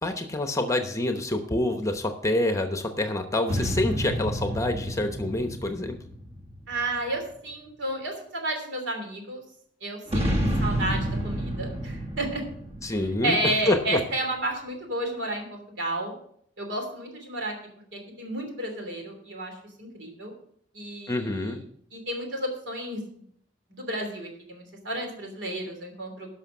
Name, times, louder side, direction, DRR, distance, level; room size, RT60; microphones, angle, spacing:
voice 1, 0.0-6.0 12.8-14.0 21.1-21.6, left 1 dB, 15° left, 6 dB, 0.9 m, -27 dB
sound 1, 3.5-7.1 10.1-13.9, equal, 35° right, 1.7 m, -30 dB
voice 2, 6.7-9.4 9.8-10.3 10.6-12.4 12.9-13.0 13.2-16.1 16.6-17.5 17.9-20.3 20.7-21.5 21.9-23.0 23.7-26.3, right 1 dB, 70° right, 3 dB, 3.0 m, -32 dB
11.5 x 6.1 x 6.1 m, 0.66 s
head